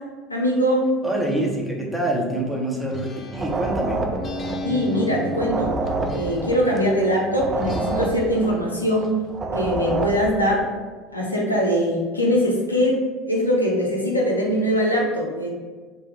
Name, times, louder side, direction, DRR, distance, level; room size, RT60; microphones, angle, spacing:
voice 1, 0.3-0.9 4.6-5.7 6.1-9.2 9.5-10.7 11.1-13.0 13.3-15.5, equal, 90° left, -3 dB, 0.5 m, -22 dB
voice 2, 1.0-4.0, right 1 dB, 10° right, -2 dB, 0.8 m, -26 dB
Acoustic guitar, 2.9-7.0 7.6-9.2, left 2 dB, 35° left, 0.4 m, -38 dB
sound 1, 3.3-10.7, right 3 dB, 25° right, 0.4 m, -28 dB
sound 2, 4.1-10.1, equal, 65° right, 0.8 m, -36 dB
3.0 x 2.2 x 3.4 m, 1.4 s
figure-of-eight pair, 65°, 0 cm